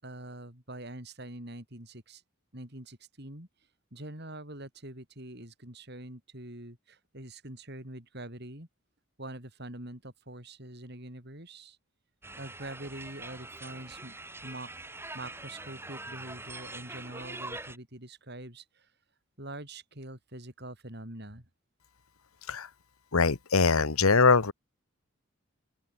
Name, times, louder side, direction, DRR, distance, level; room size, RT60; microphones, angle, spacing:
voice 1, 0.0-2.2 2.5-3.5 3.9-8.7 9.2-11.8 12.4-14.7 15.1-18.9 19.4-21.5, right 1 dB, 50° right, 6.4 m, -44 dB
sound 1, 12.2-17.8, right 2 dB, 10° right, 6.9 m, -43 dB
voice 2, 23.1-24.5, left 4 dB, 90° left, 1.2 m, -22 dB
open air
head